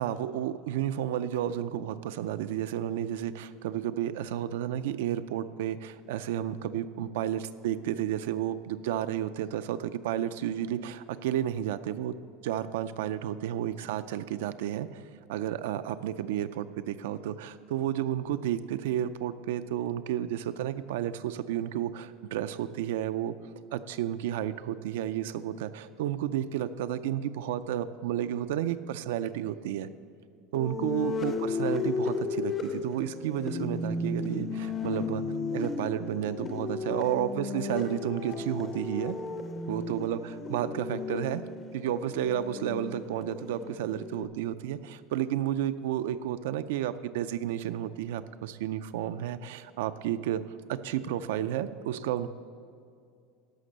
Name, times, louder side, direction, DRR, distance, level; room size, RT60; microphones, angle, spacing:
voice 1, 0.0-12.1 12.4-15.0 15.3-23.3 23.7-29.9 30.5-35.2 35.5-39.2 39.7-41.4 41.7-50.4 50.7-52.3, right 11 dB, 80° right, 11 dB, 0.4 m, -32 dB
sound 1, 30.5-44.3, left 4 dB, 20° left, 0.5 m, -34 dB
11.5 x 5.9 x 6.6 m, 2.4 s
supercardioid pair, 175°, 0 cm